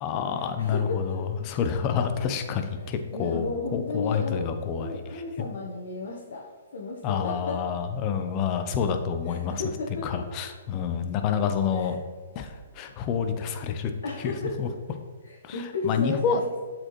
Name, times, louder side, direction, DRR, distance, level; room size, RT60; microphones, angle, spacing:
voice 1, 0.0-4.9 7.0-9.6 10.0-12.0 12.4-13.9 14.2-14.3 14.6-14.7 15.4-16.4, left 7 dB, 30° left, 7 dB, 0.6 m, -28 dB
voice 2, 0.6-1.2 3.1-4.5 4.8-7.6 9.3-10.2 11.7-11.9 14.0-14.6 15.2-16.4, left 3 dB, 70° left, -2 dB, 0.9 m, -33 dB
7.5 x 4.4 x 3.1 m, 1.4 s
hypercardioid pair, 140°, 0 cm